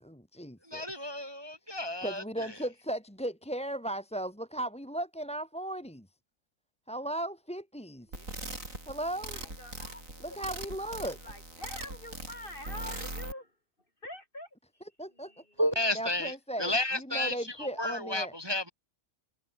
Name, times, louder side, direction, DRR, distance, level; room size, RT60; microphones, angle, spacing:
voice 1, 0.0-0.9 2.0-6.1 6.9-8.2 8.9-9.4 10.2-11.2 15.0-15.4 15.9-18.3, right 1 dB, 5° left, 2.1 m, -36 dB
voice 2, 0.7-2.5 15.6-18.7, left 1 dB, 15° right, 3.0 m, -32 dB
voice 3, 8.1-8.5 9.3-10.4 10.8-13.5 14.0-14.5 15.1-15.8, left 1 dB, 35° left, 7.3 m, -46 dB
sound 1, 8.1-13.3, right 1 dB, 55° right, 8.3 m, -41 dB
omnidirectional pair, 1.7 m